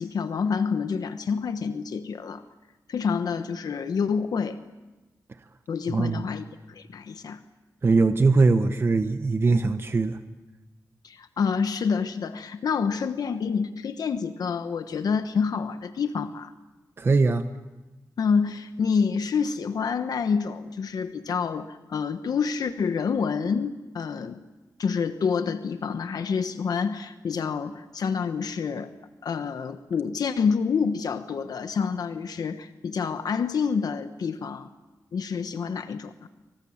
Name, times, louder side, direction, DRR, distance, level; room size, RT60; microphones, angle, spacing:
voice 1, 0.0-2.4 2.9-4.6 5.7-7.4 11.0-16.5 18.2-24.4 24.8-28.9 29.2-34.7 35.1-36.3, left 6 dB, 75° left, 9 dB, 1.2 m, -28 dB
voice 2, 5.9-6.3 7.8-10.2 17.0-17.4, right 3 dB, 35° right, 8 dB, 1.1 m, -21 dB
28.5 x 24.5 x 7.3 m, 1.1 s
wide cardioid pair, 115°, 7 cm